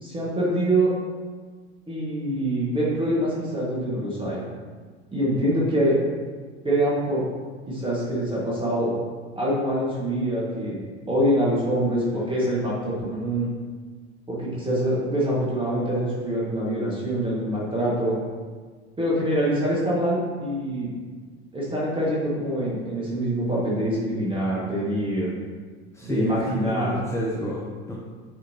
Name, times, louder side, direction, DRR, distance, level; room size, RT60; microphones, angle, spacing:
voice 1, 0.0-0.9 1.9-4.4 5.1-5.9 6.6-7.3 7.7-8.9 9.4-10.8 11.1-13.5 14.3-18.2 19.0-20.9 21.5-25.3 26.0-27.0, right 1 dB, 15° right, -6 dB, 1.9 m, -25 dB
voice 2, 25.9-27.9, equal, 10° left, -4 dB, 1.0 m, -29 dB
8.8 x 5.0 x 2.9 m, 1.5 s
figure-of-eight pair, 75°, 34 cm